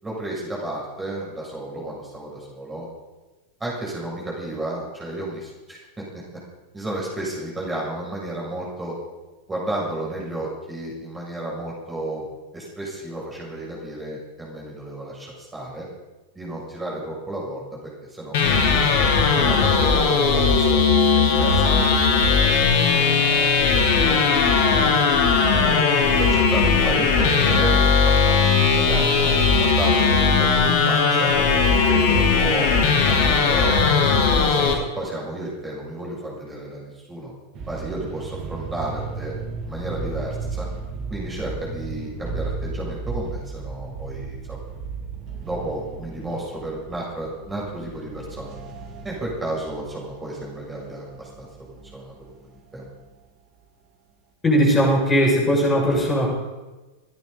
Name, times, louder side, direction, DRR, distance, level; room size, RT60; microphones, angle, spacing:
voice 1, 0.0-2.9 3.6-6.2 6.7-9.0 9.5-12.3 12.5-15.9 16.4-18.6 19.3-23.5 24.1-24.6 25.4-25.8 26.1-31.3 31.7-33.8 34.2-37.3 37.7-39.3 39.6-40.7 41.1-44.6 45.4-48.5 49.0-52.9, right 1 dB, 10° right, -4 dB, 7.0 m, -32 dB
sound 1, 18.3-34.7, left 5 dB, 50° left, 2.3 m, -18 dB
sound 2, 37.5-53.0, right 4 dB, 35° right, 2.9 m, -35 dB
voice 2, 54.4-56.3, equal, 15° left, -4 dB, 6.9 m, -19 dB
29.0 x 10.5 x 4.2 m, 1.2 s
figure-of-eight pair, 90°, 0 cm